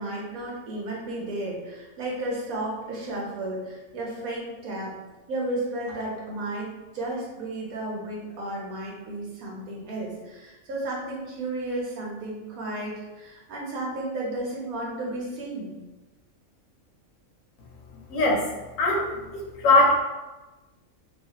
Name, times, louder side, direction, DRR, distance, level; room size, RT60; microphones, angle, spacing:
voice 1, 0.0-5.0 5.3-6.7 6.9-15.8, right 1 dB, 85° right, -3 dB, 1.3 m, -33 dB
voice 2, 18.1-18.5 18.8-20.0, left 2 dB, 75° left, -1 dB, 1.0 m, -21 dB
2.7 x 2.4 x 2.8 m, 1.1 s
omnidirectional pair, 1.4 m